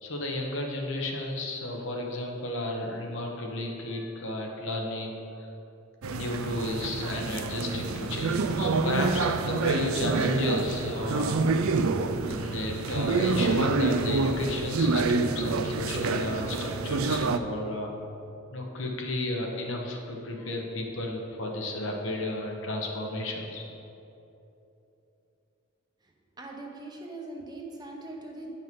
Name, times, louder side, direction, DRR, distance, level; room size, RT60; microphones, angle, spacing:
voice 1, 0.0-5.2 6.1-11.4 12.3-17.9 18.5-23.6, left 1 dB, 65° left, 1 dB, 1.1 m, -33 dB
sound 1, 6.0-17.4, right 3 dB, 80° right, 0.5 m, -27 dB
voice 2, 26.4-28.5, right 2 dB, 20° right, 0 dB, 0.9 m, -41 dB
9.3 x 5.6 x 5.3 m, 2.9 s
head